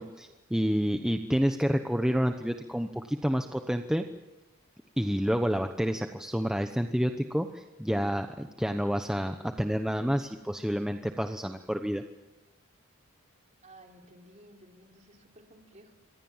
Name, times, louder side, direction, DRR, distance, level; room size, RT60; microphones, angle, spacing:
voice 1, 0.0-4.1 5.0-12.0, equal, 5° right, 5 dB, 1.0 m, -29 dB
voice 2, 13.6-15.9, right 1 dB, 30° right, 2 dB, 4.0 m, -55 dB
27.0 x 24.5 x 7.4 m, 0.99 s
head